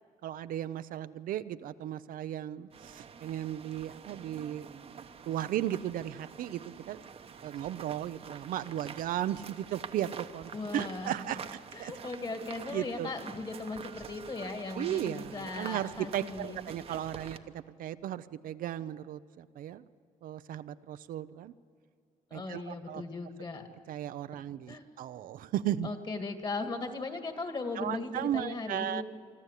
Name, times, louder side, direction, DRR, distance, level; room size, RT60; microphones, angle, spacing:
voice 1, 0.2-4.7 5.3-7.0 7.4-11.9 12.7-13.1 14.8-19.9 20.2-21.5 22.3-23.0 23.9-25.9 27.8-29.0, right 11 dB, 75° right, 12 dB, 0.6 m, -36 dB
sound 1, 2.7-17.4, right 6 dB, 45° right, 1.0 m, -47 dB
voice 2, 10.5-11.2 11.7-16.6 17.2-17.3 22.3-23.7 24.3-24.4 24.7-24.8 25.8-29.0, left 3 dB, 30° left, 7 dB, 2.1 m, -38 dB
25.0 x 13.0 x 8.3 m, 2.3 s
cardioid pair, 110°, 14 cm